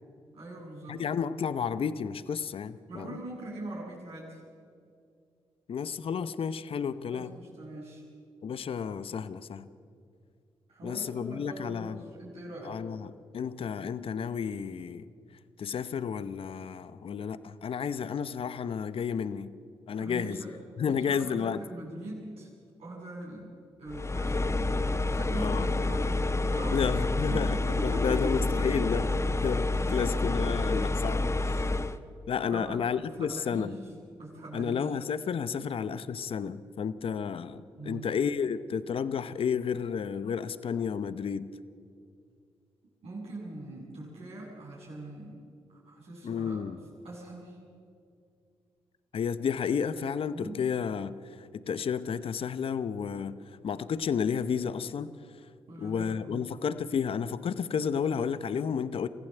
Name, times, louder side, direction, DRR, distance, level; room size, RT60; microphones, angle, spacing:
voice 1, 0.3-1.0 2.9-4.4 7.1-8.0 10.7-12.8 20.0-20.5 20.8-22.5 22.8-23.5 23.8-24.3 25.0-26.1 26.4-26.9 27.3-27.5 27.8-28.6 28.9-29.0 29.9-30.5 32.5-33.7 34.2-34.8 37.8-38.1 43.0-45.4 45.9-46.6 47.0-47.6 50.3-50.6 55.7-56.5, right 1 dB, 75° right, -4 dB, 7.5 m, -42 dB
voice 2, 0.9-3.2 5.7-7.3 8.4-9.7 10.8-12.1 12.6-15.0 15.6-19.5 19.9-21.6 25.3-25.9 26.7-29.0 29.4-31.7 32.3-33.8 34.5-41.5 46.2-46.8 49.1-53.4 53.6-55.1 55.8-59.1, left 7 dB, 60° left, 14 dB, 0.9 m, -32 dB
sound 1, 23.9-32.0, left 2 dB, 25° left, 1.1 m, -28 dB
24.5 x 15.0 x 8.0 m, 2.4 s
supercardioid pair, 45°, 10 cm